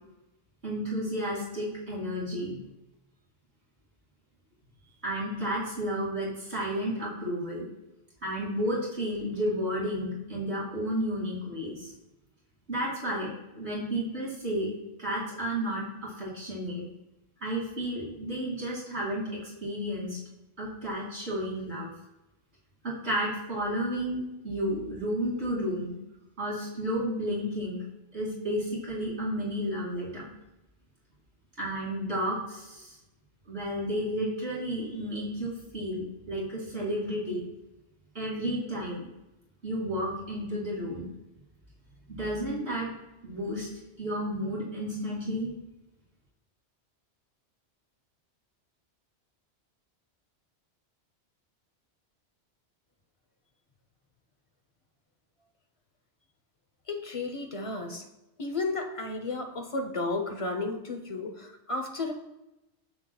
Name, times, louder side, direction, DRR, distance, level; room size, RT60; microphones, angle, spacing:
voice 1, 0.6-2.7 5.0-7.7 8.2-11.9 12.7-13.3 13.6-14.7 15.0-16.9 17.4-20.2 20.6-21.9 22.8-25.9 26.4-27.8 28.1-30.3 31.6-32.9 33.5-37.5 38.1-39.1 39.6-41.1 42.1-42.9 43.2-43.7 44.0-45.5, equal, 70° right, -5 dB, 2.8 m, -32 dB
voice 2, 56.9-58.0 58.4-62.1, left 3 dB, 35° left, 3 dB, 0.8 m, -33 dB
9.7 x 7.3 x 2.3 m, 0.94 s
omnidirectional pair, 1.2 m